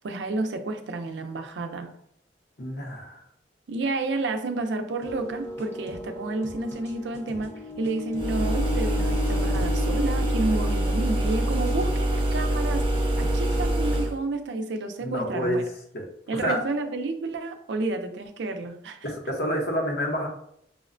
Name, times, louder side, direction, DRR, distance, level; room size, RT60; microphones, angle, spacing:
voice 1, 0.0-1.9 3.7-15.6 16.3-19.1, right 2 dB, 80° right, 6 dB, 0.5 m, -30 dB
voice 2, 2.6-3.2 15.0-15.6 15.9-16.0 16.3-16.6 19.0-20.3, equal, 60° left, 0 dB, 0.9 m, -28 dB
sound 1, 5.0-14.1, left 2 dB, 15° left, 0.7 m, -36 dB
sound 2, 8.1-14.2, right 1 dB, 30° right, 0.6 m, -25 dB
5.5 x 2.1 x 2.5 m, 0.72 s
head